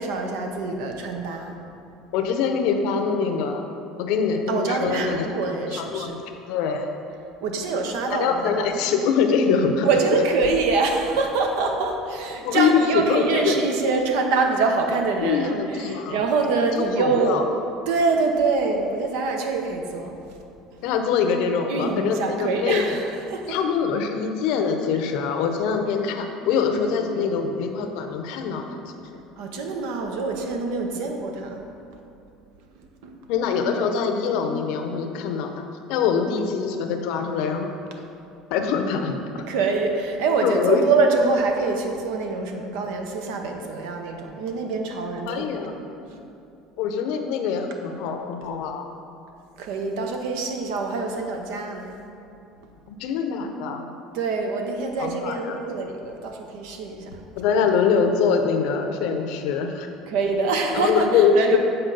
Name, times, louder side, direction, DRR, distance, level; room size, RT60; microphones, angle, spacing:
voice 1, 0.0-1.6 4.5-6.1 7.4-8.7 9.8-17.4 17.9-20.2 21.7-23.6 29.4-31.6 33.0-33.1 39.4-46.3 49.6-51.9 54.1-57.2 60.1-61.6, right 4 dB, 80° right, 3 dB, 0.8 m, -25 dB
voice 2, 2.1-3.7 4.0-5.3 5.7-6.2 6.5-6.9 8.1-9.9 12.4-13.6 15.2-16.2 16.7-17.4 20.8-23.0 23.5-29.2 30.9-31.0 33.3-37.7 38.5-39.4 40.4-40.8 45.3-45.7 46.8-48.9 52.9-53.9 55.0-55.6 57.4-59.9 60.7-61.6, left 6 dB, 75° left, 5 dB, 0.6 m, -24 dB
7.8 x 4.3 x 3.9 m, 2.6 s
supercardioid pair, 105°, 0 cm